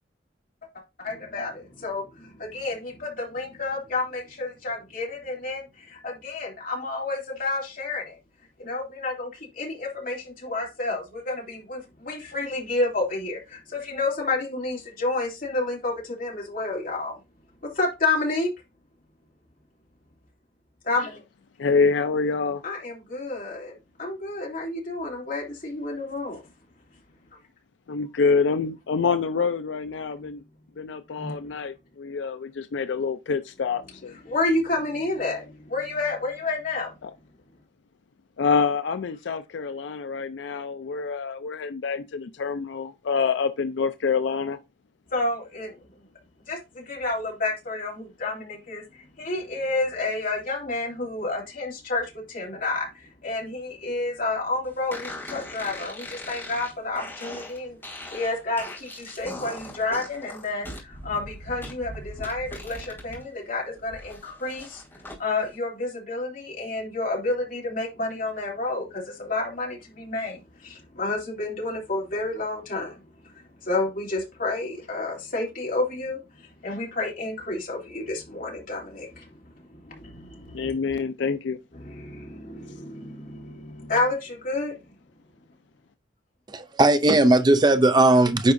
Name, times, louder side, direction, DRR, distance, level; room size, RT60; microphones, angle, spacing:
voice 1, 1.0-8.2 8.6-17.2 17.7-18.5 20.8-21.2 22.6-26.4 31.2-31.4 34.2-36.9 45.1-45.8 46.5-57.8 58.1-64.8 65.2-73.0 73.6-79.4 79.7-80.7 81.8-84.7, left 2 dB, 50° left, 2.8 m, -30 dB
voice 2, 21.6-22.6 27.9-30.4 30.8-34.1 37.0-37.1 38.4-44.6 80.5-81.6, left 5 dB, 80° left, 0.4 m, -26 dB
sound 1, 54.9-63.2 63.6-65.2, left 1 dB, 15° left, 3.1 m, -40 dB
voice 3, 86.5-88.5, right 2 dB, 25° right, 0.5 m, -18 dB
9.7 x 4.7 x 2.6 m
head